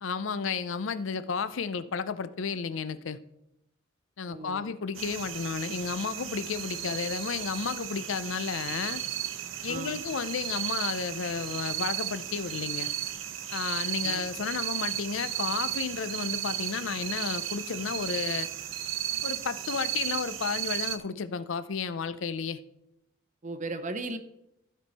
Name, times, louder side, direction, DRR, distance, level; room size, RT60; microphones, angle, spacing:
voice 1, 0.0-3.2 4.2-9.0 9.6-12.9 13.5-18.5 19.2-22.6, left 6 dB, 75° left, 14 dB, 0.5 m, -32 dB
voice 2, 4.3-4.6 9.7-10.0 14.0-14.2 23.4-24.2, right 2 dB, 40° right, 7 dB, 0.7 m, -36 dB
sound 1, 4.9-21.0, right 11 dB, 80° right, 0.8 m, -34 dB
14.5 x 5.4 x 4.1 m, 0.84 s
head